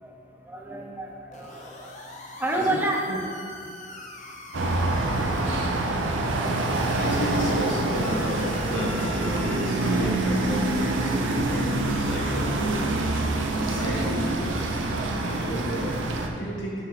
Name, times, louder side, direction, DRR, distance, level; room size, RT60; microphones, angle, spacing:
voice 1, 0.5-1.7 2.4-3.0 15.4-15.5, right 2 dB, 10° right, -1 dB, 0.7 m, -29 dB
sound 1, 1.3-5.9 6.7-10.9, left 2 dB, 40° left, 0.8 m, -42 dB
sound 2, 4.5-16.3, right 2 dB, 85° right, 0.7 m, -26 dB
voice 2, 7.0-13.1 13.6-14.7 15.2-16.8, equal, 90° left, -4 dB, 1.6 m, -32 dB
6.6 x 6.4 x 4.1 m, 2.4 s
head